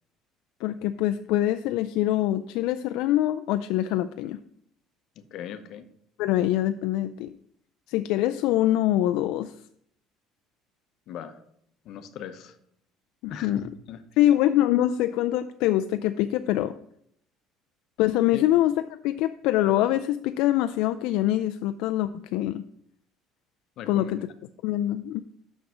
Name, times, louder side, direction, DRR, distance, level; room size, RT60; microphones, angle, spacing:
voice 1, 0.6-4.4 6.2-7.3 7.9-9.5 13.2-13.6 14.2-16.7 18.0-18.7 19.0-22.6 23.9-24.3 24.6-25.2, left 13 dB, 70° left, 10 dB, 0.3 m, -24 dB
voice 2, 5.2-5.9 11.1-11.4 11.8-12.6 13.3-14.0 18.3-18.4 23.8-24.1, left 8 dB, 50° left, 9 dB, 0.7 m, -39 dB
6.2 x 5.9 x 6.3 m, 0.70 s
cardioid pair, 170°, 0 cm